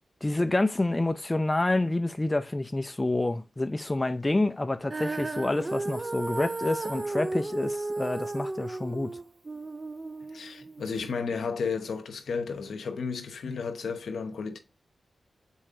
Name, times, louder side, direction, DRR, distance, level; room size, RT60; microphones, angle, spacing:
voice 1, 0.2-9.1, left 2 dB, 20° left, 0.5 m, -28 dB
Female singing, 4.9-11.1, right 2 dB, 35° right, 0.3 m, -34 dB
voice 2, 10.3-14.6, left 5 dB, 80° left, 1.0 m, -33 dB
7.2 x 4.4 x 3.7 m
cardioid pair, 60°, 0 cm